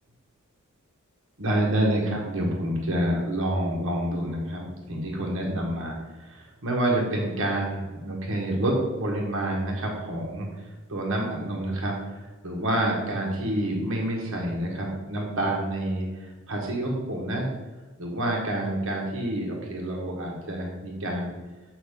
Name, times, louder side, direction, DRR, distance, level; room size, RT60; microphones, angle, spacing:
voice 1, 1.4-17.5 18.0-21.3, right 1 dB, 65° right, -1 dB, 1.5 m, -28 dB
8.3 x 5.4 x 3.7 m, 1.2 s
head